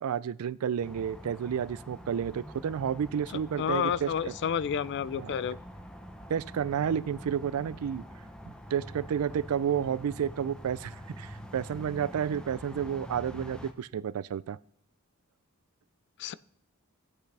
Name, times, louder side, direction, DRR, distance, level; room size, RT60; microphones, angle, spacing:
voice 1, 0.0-4.3 5.2-5.3 6.3-8.1 8.5-14.6, right 8 dB, 80° right, 19 dB, 0.4 m, -31 dB
sound 1, 0.8-13.7, equal, 5° left, 0.7 m, -45 dB
voice 2, 3.6-5.6 16.2-16.3, left 8 dB, 55° left, 18 dB, 0.3 m, -30 dB
14.0 x 8.3 x 3.3 m, 0.70 s
head